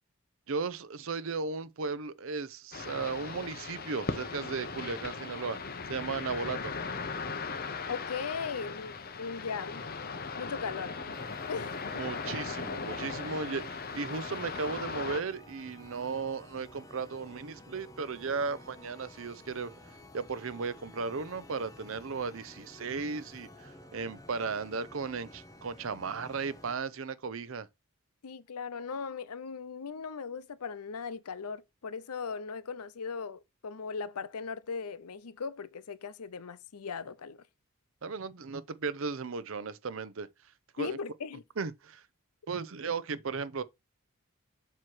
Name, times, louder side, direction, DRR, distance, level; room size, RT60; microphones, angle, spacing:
voice 1, 0.5-5.6 5.9-6.7 11.9-19.7 20.1-27.7 38.0-40.3 40.7-41.0 41.6-42.0 42.5-43.6, right 4 dB, 65° right, 0.6 m, -36 dB
sound 1, 2.7-15.2, left 4 dB, 40° left, 0.9 m, -38 dB
voice 2, 7.9-9.8 10.4-11.0 11.5-11.8 28.2-37.4 40.8-41.4, left 5 dB, 90° left, 0.6 m, -38 dB
sound 2, 11.1-26.8, left 1 dB, 15° left, 0.7 m, -52 dB
7.6 x 3.0 x 6.1 m
head